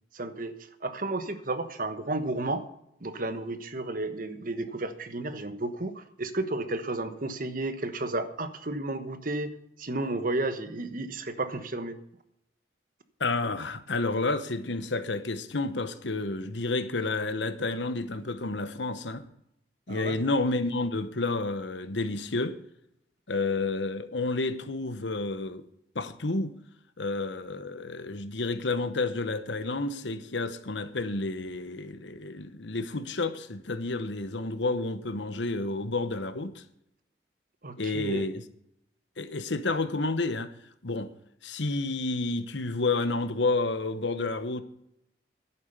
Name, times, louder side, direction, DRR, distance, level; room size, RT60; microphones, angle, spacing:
voice 1, 0.1-2.7 3.0-9.5 9.8-12.0 19.9-20.2 37.6-38.3, right 2 dB, 50° right, 1.2 m, -32 dB
voice 2, 13.2-19.3 19.9-22.6 23.3-25.6 25.9-26.5 27.0-36.6 37.8-38.4 39.2-40.5 40.8-41.1 41.4-44.6, left 3 dB, 80° left, 1.1 m, -30 dB
11.0 x 8.9 x 6.8 m
head